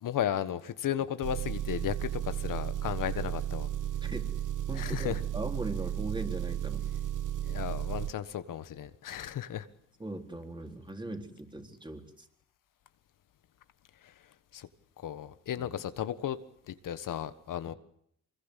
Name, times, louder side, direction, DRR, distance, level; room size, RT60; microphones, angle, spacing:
voice 1, 0.0-3.7 4.7-5.2 7.4-9.7 14.0-14.1 14.5-14.7 15.0-16.4 16.7-17.7, left 10 dB, 80° left, 12 dB, 1.5 m, -34 dB
Engine, 1.2-8.1, right 11 dB, 75° right, 1.1 m, -34 dB
voice 2, 4.7-6.9 10.0-12.3 15.6-15.7, right 1 dB, 15° right, 5 dB, 4.1 m, -39 dB
25.0 x 21.5 x 8.4 m, 0.71 s
cardioid pair, 85°, 32 cm